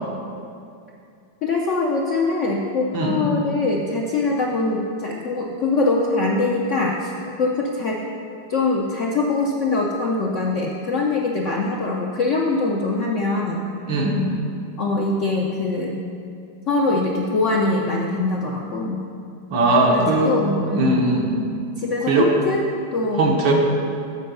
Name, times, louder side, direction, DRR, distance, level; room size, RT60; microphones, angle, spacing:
voice 1, 1.4-7.1 7.4-8.0 8.5-13.7 14.8-16.0 16.7-19.0 19.8-21.0 21.8-22.6 22.9-23.3, left 3 dB, 70° left, -1 dB, 0.7 m, -23 dB
voice 2, 13.9-14.2 19.5-20.3 20.7-21.3 22.1-22.3 23.2-23.5, right 2 dB, 85° right, 0 dB, 1.8 m, -19 dB
8.7 x 4.6 x 6.7 m, 2.5 s
omnidirectional pair, 2.0 m